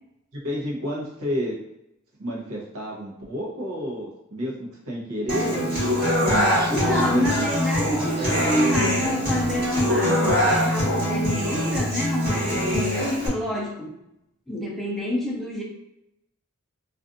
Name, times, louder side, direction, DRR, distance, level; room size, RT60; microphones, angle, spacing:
voice 1, 0.3-1.6 2.2-5.8 6.2-7.4 8.0-9.3 12.8-13.1, equal, 80° right, -3 dB, 0.9 m, -31 dB
Human voice / Acoustic guitar, 5.3-13.3, equal, 45° right, 1.3 m, -23 dB
voice 2, 6.4-14.0 14.5-15.6, left 1 dB, ahead, -4 dB, 0.5 m, -28 dB
2.5 x 2.4 x 2.5 m, 0.85 s
head